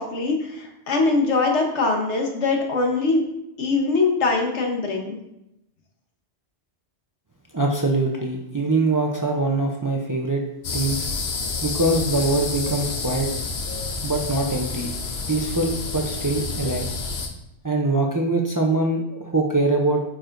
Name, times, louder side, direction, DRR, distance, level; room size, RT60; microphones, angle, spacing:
voice 1, 0.0-3.2 3.6-5.2, left 3 dB, 85° left, 2 dB, 1.4 m, -22 dB
voice 2, 7.5-10.4 10.7-11.1 11.6-13.3 14.0-14.9 15.3-16.9 17.6-20.0, right 2 dB, 25° right, 1 dB, 0.5 m, -23 dB
sound 1, 10.6-17.3, left 4 dB, 70° left, 1.1 m, -29 dB
9.0 x 4.8 x 2.6 m, 0.86 s
omnidirectional pair, 1.1 m